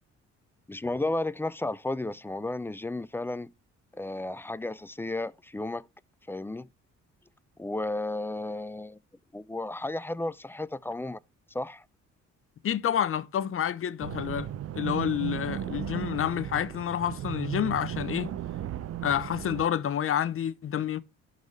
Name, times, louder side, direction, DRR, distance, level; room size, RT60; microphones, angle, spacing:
voice 1, 0.7-3.5 3.9-5.9 6.3-6.7 7.6-9.0 9.3-11.2 11.5-11.8, left 2 dB, 10° left, 0.3 m, -33 dB
voice 2, 12.6-14.5 14.7-18.3 19.0-21.0, left 9 dB, 45° left, 0.6 m, -29 dB
sound 1, 14.0-19.6, right 11 dB, 55° right, 0.5 m, -35 dB
11.5 x 4.0 x 3.1 m
cardioid pair, 90°, 30 cm